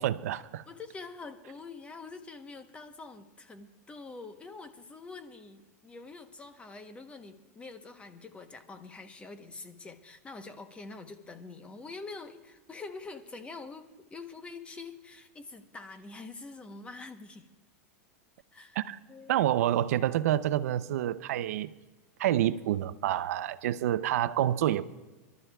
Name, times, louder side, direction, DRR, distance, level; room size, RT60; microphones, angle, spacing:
voice 1, 0.0-0.6 18.8-19.0 19.3-21.7 22.2-24.8, right 12 dB, 75° right, 0.5 m, -28 dB
voice 2, 0.7-17.5 18.5-18.8 19.1-19.4, left 3 dB, 15° left, 0.9 m, -45 dB
28.0 x 12.5 x 2.3 m
supercardioid pair, 145°, 8 cm